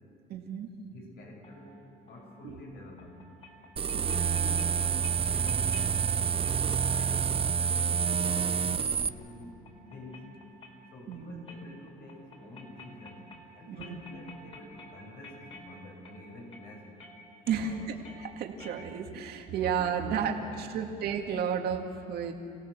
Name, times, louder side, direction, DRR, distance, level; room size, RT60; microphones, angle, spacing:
voice 1, 0.3-0.7 2.4-2.6 3.9-4.6 11.1-11.4 13.7-14.0 17.5-22.3, right 7 dB, 70° right, 3 dB, 2.1 m, -33 dB
voice 2, 0.9-1.7 2.0-3.1 4.1-7.9 8.3-9.5 9.9-10.3 10.9-13.2 13.6-17.0 17.5-17.9 19.5-19.8 20.0-21.0, left 1 dB, 65° left, 0 dB, 6.9 m, -48 dB
sound 1, 1.4-19.3, left 1 dB, 35° left, 4.4 m, -52 dB
sound 2, 3.8-9.1, right 7 dB, 35° right, 0.8 m, -28 dB
28.0 x 17.5 x 6.9 m, 2.7 s
cardioid pair, 110°, 17 cm